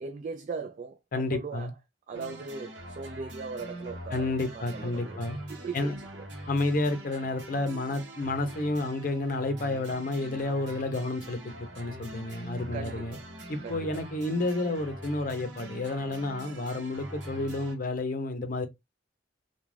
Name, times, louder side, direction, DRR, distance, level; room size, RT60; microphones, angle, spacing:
voice 1, 0.0-1.7 2.1-5.2 5.5-6.3 12.7-13.2 13.6-14.0, right 4 dB, 40° right, 0.3 m, -39 dB
voice 2, 1.1-1.7 4.1-5.4 5.7-6.0 6.5-13.2 13.5-18.7, left 2 dB, 50° left, 0.6 m, -30 dB
sound 1, 2.1-17.7, right 1 dB, 75° right, 0.8 m, -43 dB
2.3 x 2.2 x 3.2 m
head